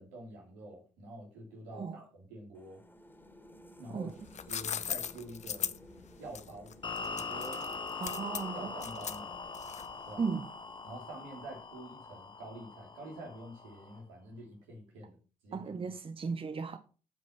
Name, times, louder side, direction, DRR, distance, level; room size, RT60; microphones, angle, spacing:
voice 1, 0.0-2.8 3.8-4.1 4.5-5.7 6.2-6.7 7.1-7.6 8.5-9.4 10.0-10.3 10.8-15.1 15.4-15.6, right 1 dB, 85° right, 3.2 m, -47 dB
sound 1, 2.5-11.9, equal, 10° left, 2.6 m, -56 dB
sound 2, 4.1-10.1, left 8 dB, 50° left, 0.6 m, -39 dB
sound 3, 6.8-14.0, left 4 dB, 30° left, 1.1 m, -42 dB
voice 2, 8.0-8.8 10.2-10.5 15.5-16.8, right 5 dB, 35° right, 1.0 m, -36 dB
9.1 x 5.2 x 5.9 m
hypercardioid pair, 45°, 16 cm